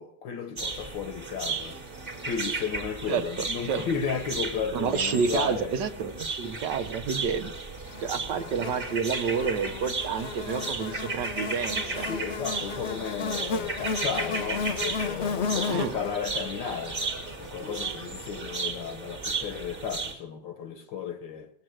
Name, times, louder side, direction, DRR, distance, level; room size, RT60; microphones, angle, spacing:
voice 1, 0.0-1.8 2.2-5.7 12.0-17.0 17.4-21.5, left 7 dB, 70° left, 1.6 m, -34 dB
sound 1, 0.6-20.1, right 3 dB, 30° right, 1.9 m, -35 dB
voice 2, 4.7-7.5 8.0-12.1 15.7-15.9, right 6 dB, 65° right, 1.5 m, -29 dB
Buzz, 7.9-18.3, left 5 dB, 50° left, 0.8 m, -34 dB
20.0 x 7.6 x 7.8 m
omnidirectional pair, 2.1 m